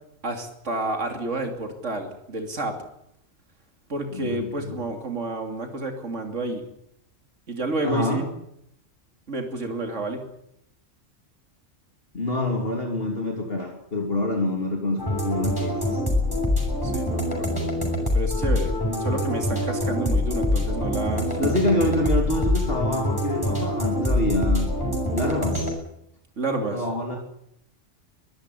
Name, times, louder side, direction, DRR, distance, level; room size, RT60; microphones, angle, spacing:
voice 1, 0.2-2.7 3.9-6.6 7.5-8.3 9.3-10.2 16.8-17.5 18.1-18.7 19.0-21.5 26.4-26.8, right 2 dB, 75° right, 4 dB, 3.3 m, -29 dB
voice 2, 4.1-4.8 7.8-8.3 12.1-16.0 21.4-24.7 25.1-25.7 26.7-27.2, left 1 dB, 50° left, 1 dB, 3.4 m, -26 dB
sound 1, 15.0-25.7, left 1 dB, 15° left, 6.5 m, -25 dB
23.0 x 14.5 x 9.7 m, 0.76 s
omnidirectional pair, 1.3 m